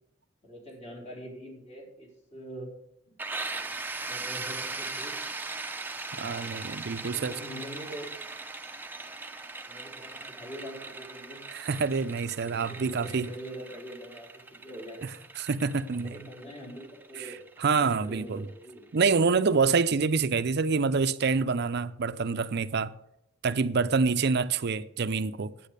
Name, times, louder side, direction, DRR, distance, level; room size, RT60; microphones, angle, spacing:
voice 1, 0.4-2.7 3.1-3.2 4.1-5.2 6.0-6.4 7.0-8.1 9.7-11.8 12.4-15.1 15.9-17.4 17.8-18.9, equal, 35° left, 4.0 m, -44 dB
sound 1, 3.2-18.8, right 3 dB, 10° right, 0.7 m, -39 dB
voice 2, 6.1-7.3 11.5-13.3 15.4-16.2 17.2-17.3 17.6-18.5 18.9-22.9 23.4-25.5, right 4 dB, 55° right, 0.5 m, -26 dB
10.0 x 9.1 x 6.6 m
head